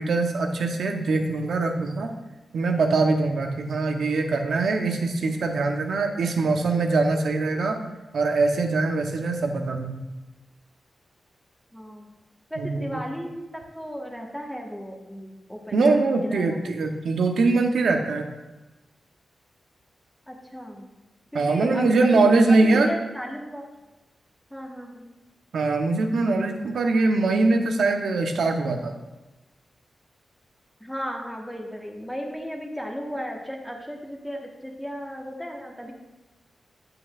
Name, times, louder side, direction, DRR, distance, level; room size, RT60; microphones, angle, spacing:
voice 1, 0.0-2.1 2.5-7.8 8.1-10.0 12.6-13.0 15.7-18.3 21.3-22.9 25.5-28.9, right 3 dB, 80° right, 4 dB, 0.8 m, -22 dB
voice 2, 11.7-12.1 12.5-16.6 20.3-20.9 21.3-23.7 24.5-25.1 30.8-35.9, equal, 5° left, 0 dB, 1.3 m, -35 dB
7.8 x 7.8 x 2.4 m, 1.1 s
cardioid pair, 65°, 0 cm